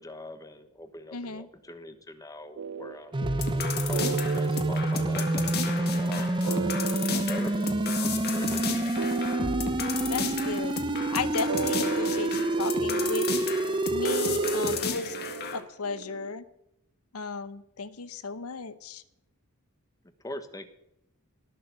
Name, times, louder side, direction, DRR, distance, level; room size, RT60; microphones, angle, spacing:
voice 1, 0.0-6.7 7.1-8.9 20.2-20.7, left 1 dB, 15° left, 9 dB, 1.1 m, -42 dB
voice 2, 1.1-1.5 10.1-10.8 11.1-13.3 13.9-15.2 15.5-16.4 17.1-19.0, left 4 dB, 80° left, 14 dB, 0.9 m, -34 dB
sound 1, 2.6-16.3, right 7 dB, 65° right, 0.4 m, -36 dB
sound 2, 3.1-14.8, right 2 dB, 20° right, 0.6 m, -28 dB
sound 3, 3.2-15.6, left 5 dB, 50° left, 1.8 m, -34 dB
18.5 x 6.7 x 6.8 m, 0.86 s
head